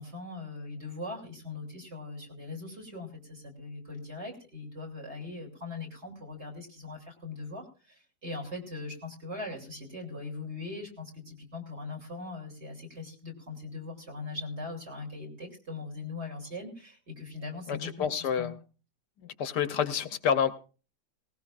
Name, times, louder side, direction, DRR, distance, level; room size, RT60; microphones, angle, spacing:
voice 1, 0.0-17.9 18.2-18.5, left 3 dB, 35° right, 0 dB, 3.3 m, -40 dB
voice 2, 17.7-18.6 19.2-20.5, left 7 dB, 70° left, 10 dB, 1.4 m, -28 dB
19.0 x 18.5 x 2.4 m, 0.36 s
omnidirectional pair, 1.9 m